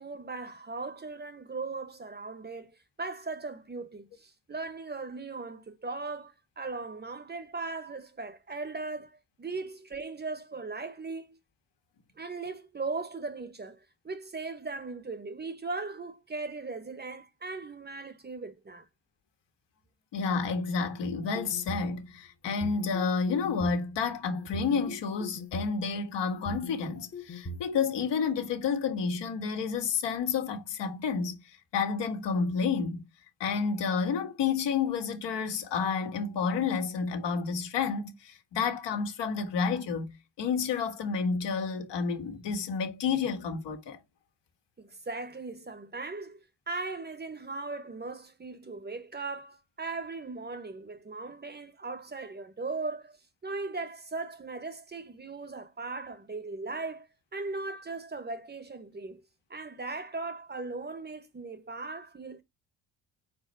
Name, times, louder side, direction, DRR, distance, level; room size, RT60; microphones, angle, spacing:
voice 1, 0.0-2.7 3.0-11.4 12.2-18.8 44.8-53.2 53.4-57.1 57.3-59.2 59.5-62.4, right 3 dB, 25° right, 1.1 m, -38 dB
voice 2, 20.1-33.0 33.4-44.0, left 5 dB, 70° left, 1.8 m, -30 dB
sound 1, 21.2-21.9 22.4-23.8 24.4-25.7 26.3-27.6, left 1 dB, 35° left, 1.3 m, -40 dB
4.5 x 4.3 x 5.3 m
cardioid pair, 95°, 44 cm